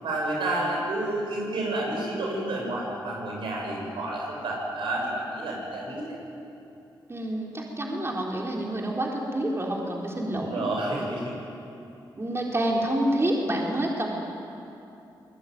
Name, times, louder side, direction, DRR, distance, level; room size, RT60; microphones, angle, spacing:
voice 1, 0.0-6.1 10.3-11.3, right 2 dB, 90° right, -2 dB, 8.0 m, -30 dB
voice 2, 7.1-10.6 12.2-14.1, right 1 dB, 30° right, -2 dB, 4.0 m, -28 dB
24.5 x 20.5 x 9.5 m, 2.8 s
cardioid pair, 70°, 8 cm